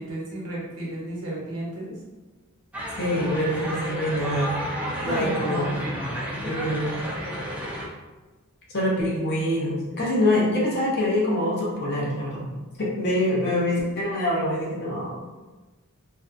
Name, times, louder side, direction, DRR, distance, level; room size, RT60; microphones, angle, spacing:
voice 1, 0.0-1.9 5.0-5.9, right 1 dB, 70° right, -5 dB, 0.9 m, -33 dB
sound 1, 2.7-7.9, equal, 5° right, 0.3 m, -32 dB
voice 2, 3.0-4.5 5.0-5.7 6.4-7.0 8.7-12.5 12.8-15.1, left 1 dB, 50° left, -5 dB, 0.7 m, -25 dB
2.6 x 2.2 x 2.5 m, 1.2 s
head